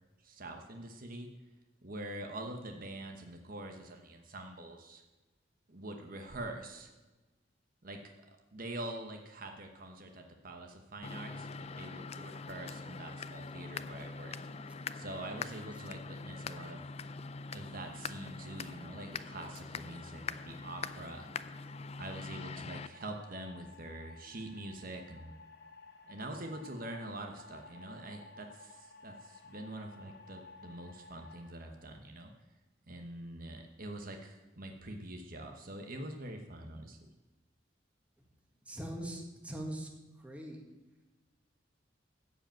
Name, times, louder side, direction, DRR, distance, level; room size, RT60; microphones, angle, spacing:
voice 1, 0.2-1.3 1.8-5.0 5.7-6.9 7.8-8.1 8.5-14.3 14.9-16.8 17.5-21.3 22.0-25.3 26.0-32.3 32.9-37.1, right 1 dB, 50° right, 4 dB, 1.1 m, -45 dB
sound 1, 11.0-22.9, left 4 dB, 35° left, 0.4 m, -43 dB
sound 2, 21.3-31.5, left 3 dB, 60° left, 1.1 m, -55 dB
voice 2, 38.6-39.9 40.2-40.7, right 1 dB, 10° right, 0 dB, 1.8 m, -41 dB
14.5 x 5.1 x 8.8 m, 1.2 s
head